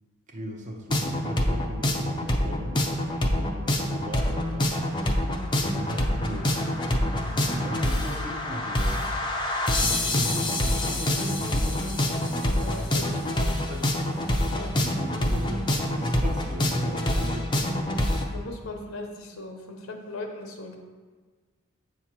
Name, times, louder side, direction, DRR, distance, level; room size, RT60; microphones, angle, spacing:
voice 1, 0.3-2.8 3.2-4.7 5.6-6.6 6.9-9.2 9.8-12.1 13.7-13.8 14.4-17.8, equal, 35° right, 0 dB, 0.7 m, -37 dB
sound 1, 0.9-18.2, left 1 dB, 20° left, 0.5 m, -26 dB
voice 2, 3.2-3.5 12.5-13.6 14.5-14.8 18.3-20.8, left 2 dB, 75° left, 3 dB, 0.8 m, -39 dB
7.8 x 2.9 x 6.0 m, 1.4 s
head